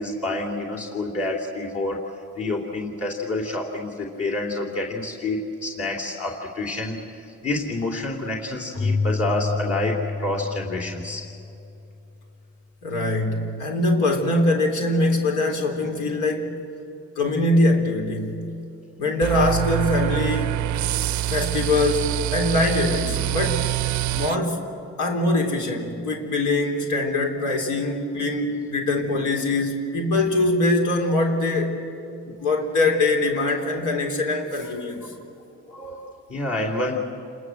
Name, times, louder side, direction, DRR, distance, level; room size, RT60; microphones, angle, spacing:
voice 1, 0.0-11.2 34.6-34.8 35.7-37.0, left 2 dB, 50° left, -1 dB, 3.2 m, -28 dB
Keyboard (musical), 8.7-12.3, left 4 dB, 35° left, 5.9 m, -29 dB
voice 2, 12.8-16.6 17.2-18.4 19.0-20.7 21.3-23.7 24.1-24.6 25.0-31.8 32.3-35.0, left 2 dB, 85° left, 1 dB, 3.6 m, -23 dB
sound 1, 19.2-24.3, right 13 dB, 70° right, 0.5 m, -25 dB
29.0 x 20.5 x 7.9 m, 2.7 s
cardioid pair, 90°, 30 cm